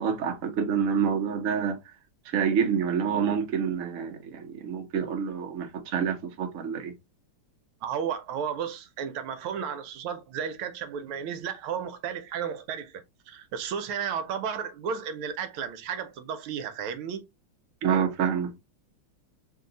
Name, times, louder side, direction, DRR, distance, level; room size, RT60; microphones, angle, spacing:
voice 1, 0.0-1.8 2.2-6.9 17.8-18.5, right 7 dB, 55° right, 0.9 m, -27 dB
voice 2, 7.8-17.3, right 7 dB, 80° right, 1.5 m, -33 dB
3.7 x 2.7 x 3.8 m
omnidirectional pair, 2.4 m